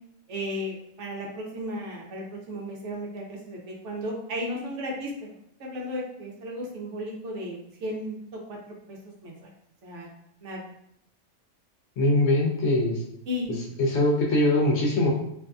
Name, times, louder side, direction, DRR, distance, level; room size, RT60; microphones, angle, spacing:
voice 1, 0.3-5.3 5.6-8.2 8.5-9.5 9.8-10.1 10.4-10.7 13.3-13.6, equal, 70° right, -1 dB, 0.9 m, -35 dB
voice 2, 12.0-13.0 13.8-15.1, left 1 dB, 65° left, -1 dB, 0.8 m, -22 dB
2.6 x 2.5 x 2.2 m, 0.73 s
omnidirectional pair, 1.3 m